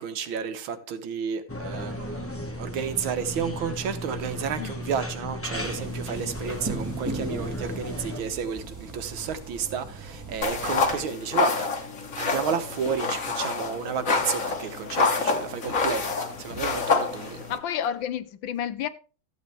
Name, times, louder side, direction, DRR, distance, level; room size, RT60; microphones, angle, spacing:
voice 1, 0.0-11.7 12.2-16.1 16.4-17.4, right 7 dB, 80° right, 1.9 m, -32 dB
sound 1, 1.5-8.2, equal, 15° left, 0.5 m, -35 dB
sound 2, 5.5-11.1, right 2 dB, 10° right, 1.6 m, -38 dB
sound 3, 10.4-17.6, left 4 dB, 45° left, 1.6 m, -27 dB
voice 2, 17.5-18.9, left 9 dB, 75° left, 1.5 m, -30 dB
13.5 x 8.3 x 3.4 m
omnidirectional pair, 2.2 m